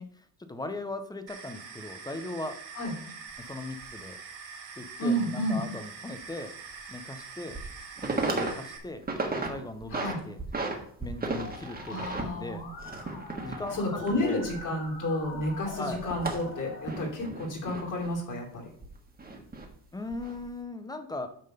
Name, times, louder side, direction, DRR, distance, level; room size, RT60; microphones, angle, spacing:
voice 1, 0.0-2.6 3.4-4.2 4.8-6.5 6.9-7.6 8.0-9.0 9.4-10.4 11.0-12.7 13.4-14.4 15.8-16.0 19.9-21.3, left 2 dB, 10° left, 9 dB, 0.5 m, -38 dB
sound 1, 1.3-8.8, right 5 dB, 70° right, 2.3 m, -44 dB
sound 2, 3.3-3.4 3.8-3.9 6.1-6.2 6.7-6.8 7.3-7.7 8.0-8.5 8.9-9.5 9.8-10.8 11.0-15.0 15.2-18.1 18.8-19.7 20.1-20.4, right 3 dB, 20° right, 1.4 m, -34 dB
voice 2, 5.0-5.6 9.9-10.2 11.9-12.7 13.5-18.7, left 1 dB, 40° left, -1 dB, 2.9 m, -31 dB
Musical instrument, 11.4-16.9, left 2 dB, 60° left, 2.6 m, -45 dB
9.2 x 3.7 x 6.6 m, 0.63 s
cardioid pair, 145°, 46 cm